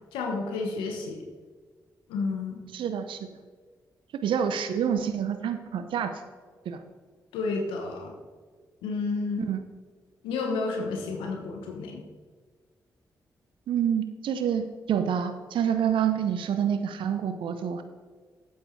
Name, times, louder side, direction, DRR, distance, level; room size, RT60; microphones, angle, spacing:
voice 1, 0.1-1.2 2.1-2.6 7.3-8.1 8.8-9.5 10.2-12.0, left 3 dB, 90° left, 2 dB, 1.1 m, -31 dB
voice 2, 2.7-3.2 4.1-6.1 6.7-6.8 9.5-9.6 13.7-17.8, right 8 dB, 75° right, 9 dB, 0.7 m, -27 dB
8.4 x 8.3 x 4.6 m, 1.5 s
hypercardioid pair, 40°, 9 cm